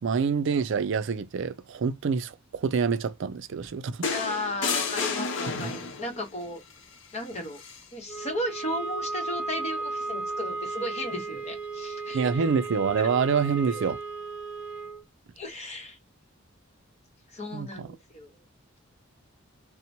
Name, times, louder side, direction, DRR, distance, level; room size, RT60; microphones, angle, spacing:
voice 1, 0.0-4.1 5.6-5.7 12.1-14.0 17.5-17.9, right 6 dB, 65° right, 0.4 m, -26 dB
sound 1, 4.0-6.2 7.6-7.8, left 4 dB, 65° left, 0.7 m, -30 dB
voice 2, 4.1-6.6 7.1-7.6 7.9-12.4 13.0-13.1 13.7-13.8 15.4-16.0 17.3-18.4, left 1 dB, 35° left, 1.0 m, -35 dB
sound 2, 8.1-15.0, right 3 dB, 5° right, 0.6 m, -35 dB
2.9 x 2.0 x 2.6 m
head